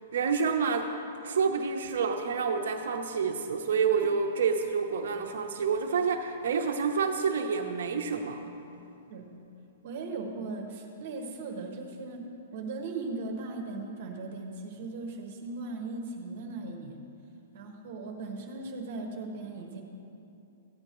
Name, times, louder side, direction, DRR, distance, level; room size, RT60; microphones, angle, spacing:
voice 1, 0.1-0.9 1.2-8.4, right 5 dB, 70° right, 4 dB, 0.7 m, -28 dB
voice 2, 9.8-12.2 12.5-17.0 17.5-19.8, right 3 dB, 45° right, 2 dB, 1.2 m, -38 dB
15.0 x 9.7 x 3.0 m, 2.7 s
hypercardioid pair, 170°, 0 cm